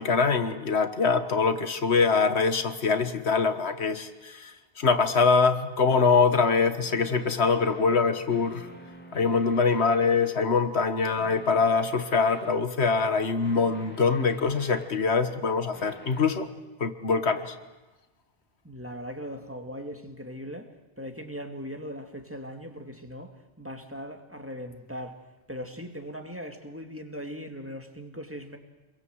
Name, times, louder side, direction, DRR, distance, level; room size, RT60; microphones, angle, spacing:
voice 1, 0.0-8.7 9.1-16.5 16.8-17.5, left 5 dB, 90° left, 1.7 m, -24 dB
sound 1, 6.8-10.4 11.1-12.7 13.4-15.1 15.7-16.3, equal, 10° left, 2.8 m, -48 dB
voice 2, 18.6-20.7 21.0-25.2 25.5-28.6, equal, 10° right, 2.2 m, -39 dB
27.5 x 22.0 x 7.9 m
omnidirectional pair, 1.1 m